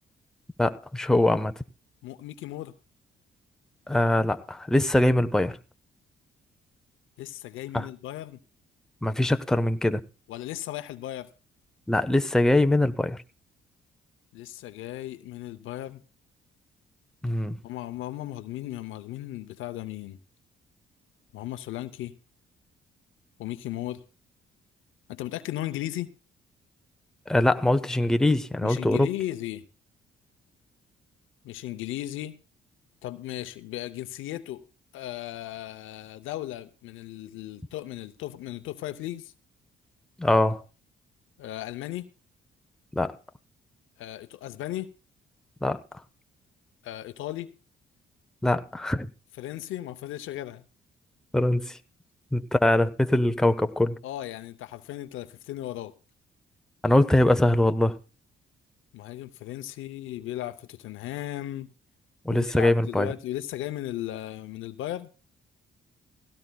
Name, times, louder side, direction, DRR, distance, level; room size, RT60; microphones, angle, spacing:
voice 1, 0.6-1.5 3.9-5.6 7.7-7.9 9.0-10.0 11.9-13.2 17.2-17.6 27.3-29.1 40.2-40.6 43.0-43.1 45.6-45.8 48.4-49.1 51.3-51.8 52.3-54.0 56.8-58.0 62.2-63.1, left 1 dB, 5° left, 0.6 m, -22 dB
voice 2, 2.0-2.7 7.2-8.4 10.3-11.3 14.3-16.0 17.6-20.2 21.3-22.2 23.4-24.0 25.1-26.1 28.6-29.7 31.4-32.4 33.0-34.6 34.9-39.3 41.4-42.1 44.0-44.9 46.8-47.5 49.4-50.6 54.0-55.9 58.9-61.7 62.3-65.1, left 14 dB, 85° left, 0.7 m, -36 dB
16.5 x 16.5 x 2.3 m
cardioid pair, 90°, 20 cm